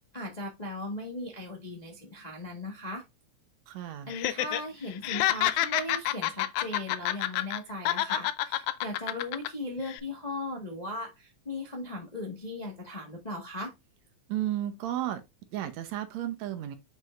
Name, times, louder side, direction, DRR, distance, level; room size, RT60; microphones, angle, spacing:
voice 1, 0.1-3.0 4.1-13.7, left 1 dB, 30° left, 0.8 m, -38 dB
voice 2, 3.7-4.1 14.3-15.2 15.5-16.8, right 12 dB, 75° right, 2.0 m, -33 dB
Laughter, 4.1-4.6 4.9-7.6 7.8-9.5 9.8-10.0, left 14 dB, 80° left, 1.9 m, -28 dB
7.6 x 5.4 x 2.4 m
omnidirectional pair, 3.3 m